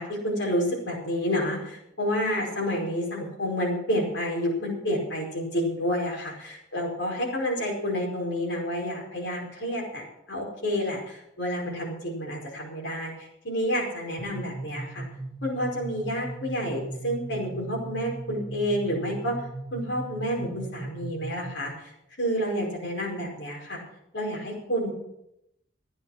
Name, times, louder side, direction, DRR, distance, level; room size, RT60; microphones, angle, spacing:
voice 1, 0.0-15.0 15.4-19.4 19.7-21.9 22.2-23.8 24.1-24.9, equal, 65° left, -1 dB, 4.9 m, -29 dB
sound 1, 14.2-21.7, right 2 dB, 20° left, 1.9 m, -38 dB
14.0 x 10.0 x 6.4 m, 0.79 s
head